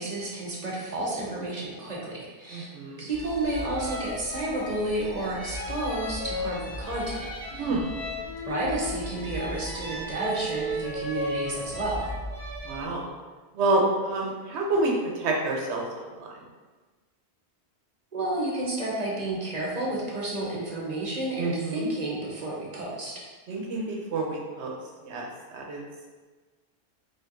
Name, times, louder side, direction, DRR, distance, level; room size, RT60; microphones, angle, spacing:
voice 1, 0.0-2.7 3.0-7.7 8.5-12.1 18.1-23.2, right 2 dB, 40° right, -4 dB, 0.9 m, -31 dB
voice 2, 2.5-3.1 7.6-7.9 12.7-13.0 13.5-14.9 15.2-16.3 21.4-21.9 23.5-24.8 25.0-25.3 25.5-25.9, right 2 dB, 85° right, 0 dB, 1.0 m, -28 dB
sound 1, 3.1-12.8, left 1 dB, 35° left, 1.2 m, -35 dB
4.3 x 3.3 x 2.5 m, 1.3 s
omnidirectional pair, 1.1 m